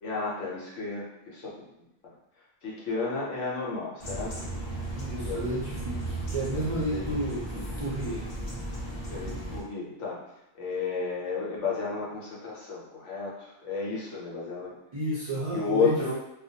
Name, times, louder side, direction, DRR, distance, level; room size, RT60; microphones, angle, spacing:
voice 1, 0.0-1.6 2.0-2.1 2.6-4.5 5.2-5.5 6.9-7.2 7.5-7.6 9.1-10.2 10.6-14.8 15.5-16.1, left 4 dB, 65° left, -4 dB, 1.0 m, -32 dB
sound 1, 4.0-9.6, right 1 dB, 45° left, 0.5 m, -35 dB
voice 2, 4.9-7.5 7.8-8.2 14.9-16.1, right 1 dB, 55° right, -9 dB, 0.4 m, -31 dB
2.4 x 2.2 x 2.7 m, 0.89 s
omnidirectional pair, 1.4 m